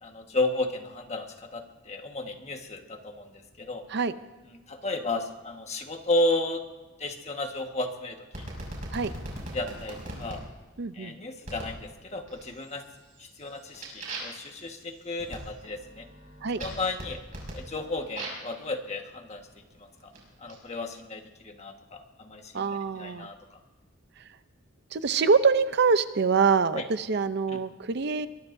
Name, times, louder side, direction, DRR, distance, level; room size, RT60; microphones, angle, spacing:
voice 1, 0.0-3.9 4.7-6.6 7.0-8.5 9.5-10.4 10.9-12.8 13.2-16.1 16.6-17.2 17.5-19.4 19.8-20.1 20.4-23.6 26.7-26.8 27.5-27.6, left 2 dB, 35° left, 4 dB, 1.5 m, -33 dB
sound 1, 8.3-10.4 11.5-11.8 12.3-12.8 13.1-18.5 19.3-20.6, right 1 dB, 40° right, 6.0 m, -40 dB
voice 2, 10.8-11.2 16.4-16.6 22.5-23.3 24.9-28.3, right 5 dB, 60° right, 12 dB, 0.6 m, -25 dB
23.0 x 21.5 x 2.7 m, 1.2 s
head